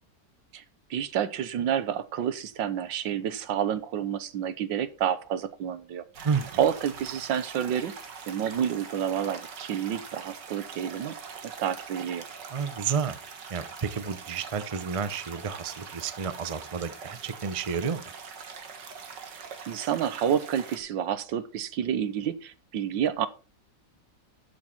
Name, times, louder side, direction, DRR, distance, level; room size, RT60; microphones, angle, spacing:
voice 1, 0.9-6.3 6.6-7.9 8.3-11.3 11.6-12.2 19.3-23.3, right 9 dB, 90° right, 1.7 m, -29 dB
sound 1, 6.1-20.8, right 5 dB, 70° right, 2.2 m, -43 dB
voice 2, 12.5-13.2 13.5-18.0, right 6 dB, 35° right, 0.5 m, -31 dB
13.0 x 7.1 x 4.3 m
omnidirectional pair, 1.9 m